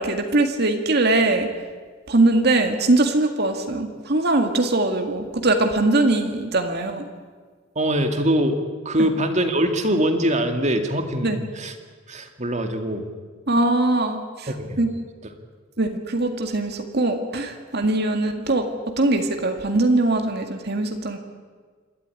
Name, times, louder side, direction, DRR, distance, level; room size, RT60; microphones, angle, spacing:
voice 1, 0.0-1.5 2.1-7.0 9.0-9.1 11.2-11.4 13.5-14.5 14.8-14.9 15.8-18.7 19.0-21.2, right 2 dB, 55° right, 5 dB, 1.9 m, -21 dB
voice 2, 7.8-8.6 8.9-11.7 12.1-13.1 14.5-14.8, right 1 dB, 35° right, 6 dB, 2.2 m, -23 dB
27.5 x 13.0 x 9.7 m, 1.5 s
head